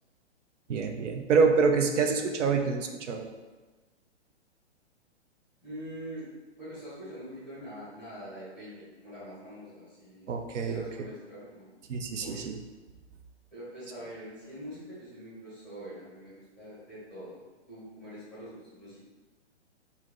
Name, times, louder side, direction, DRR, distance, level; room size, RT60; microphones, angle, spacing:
voice 1, 0.7-3.3 10.3-10.8 11.9-12.6, right 5 dB, 90° right, 4 dB, 0.6 m, -26 dB
voice 2, 5.6-6.3 6.6-10.3 10.6-11.7 12.2-12.5 13.5-17.4 17.7-19.0, equal, ahead, -12 dB, 0.9 m, -44 dB
3.1 x 2.8 x 3.7 m, 1.2 s
hypercardioid pair, 175°, 35 cm